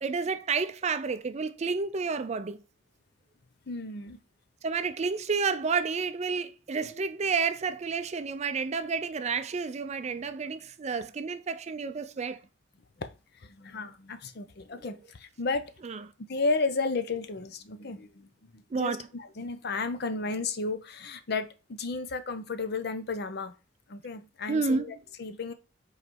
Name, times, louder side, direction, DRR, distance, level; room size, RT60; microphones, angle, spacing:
voice 1, 0.0-2.6 4.6-12.4 14.7-14.8 15.8-16.0 18.7-19.1 24.5-24.9, right 5 dB, 35° right, 0.4 m, -30 dB
voice 2, 3.7-4.2 6.8-7.0 13.0-13.1 13.5-15.7 16.3-23.5 23.9-25.5, left 3 dB, 55° left, 0.7 m, -33 dB
5.1 x 4.0 x 4.5 m
head